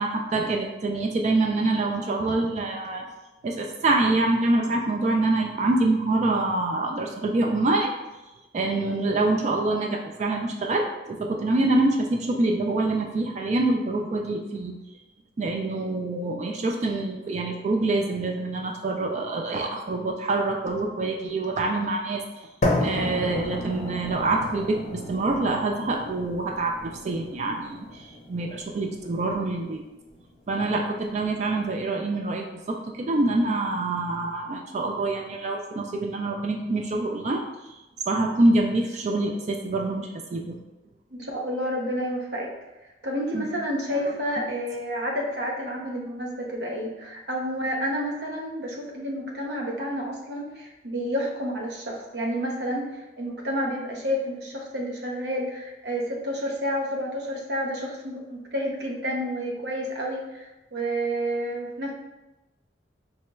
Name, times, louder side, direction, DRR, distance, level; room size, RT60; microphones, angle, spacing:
voice 1, 0.0-3.1 3.4-7.9 8.5-14.7 15.4-22.2 22.8-29.8 30.5-37.4 38.1-40.6 43.3-43.5 43.9-44.1, right 2 dB, 40° right, 2 dB, 0.3 m, -25 dB
sound 1, 22.6-30.6, left 1 dB, 40° left, 0.6 m, -32 dB
voice 2, 41.1-42.5 43.0-61.9, equal, 65° right, -1 dB, 0.7 m, -30 dB
4.2 x 2.9 x 2.2 m, 1.0 s
head